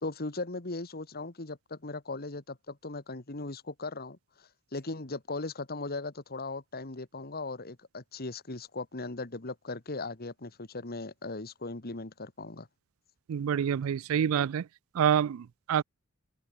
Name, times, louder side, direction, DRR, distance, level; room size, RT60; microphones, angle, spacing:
voice 1, 0.0-12.7, left 3 dB, 45° left, 1.9 m, -38 dB
voice 2, 13.3-14.6 15.0-15.8, right 8 dB, 70° right, 0.4 m, -27 dB
open air
head